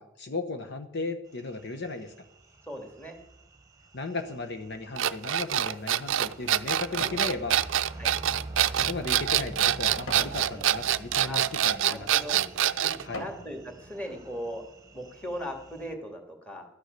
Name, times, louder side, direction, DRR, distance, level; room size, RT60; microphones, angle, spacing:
voice 1, 0.0-2.1 3.9-7.6 8.8-12.5 13.0-13.2, left 3 dB, 55° left, 7 dB, 1.0 m, -36 dB
sound 1, 1.3-15.9, right 2 dB, 15° right, 1.2 m, -46 dB
voice 2, 2.6-3.2 8.0-8.1 10.5-10.7 11.3-11.4 11.9-12.4 12.8-12.9 13.2-14.6 14.9-16.7, equal, 5° left, 4 dB, 2.1 m, -38 dB
sound 2, 5.0-13.0, right 11 dB, 70° right, 0.5 m, -25 dB
sound 3, 5.7-7.3 7.8-10.4 11.0-11.3 11.9-12.1 12.6-13.5 14.0-14.1, left 1 dB, 90° left, 2.2 m, -45 dB
13.0 x 9.8 x 6.6 m, 0.83 s
head